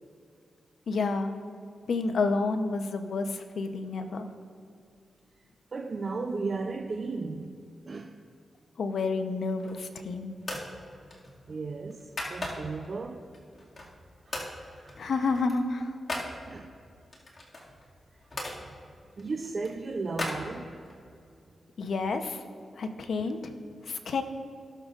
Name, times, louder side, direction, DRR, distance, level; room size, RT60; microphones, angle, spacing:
voice 1, 0.9-1.3 1.9-4.3 8.8-10.3 15.0-15.9 21.8-22.4 22.8-23.5 23.9-24.2, left 3 dB, 70° left, 7 dB, 0.8 m, -29 dB
voice 2, 5.7-7.6 7.9-8.2 11.5-13.2 14.2-15.1 16.5-16.7 18.6-18.7 19.2-20.8 23.2-23.3, right 3 dB, 55° right, 3 dB, 0.6 m, -35 dB
sound 1, 9.5-10.0 10.4-10.7 11.1-12.9 13.3-14.0 14.3-14.6 14.9-16.3 17.1-18.6 19.1-21.0, left 1 dB, 45° left, 2.1 m, -38 dB
17.0 x 6.7 x 2.5 m, 2.3 s
cardioid pair, 50°, 0 cm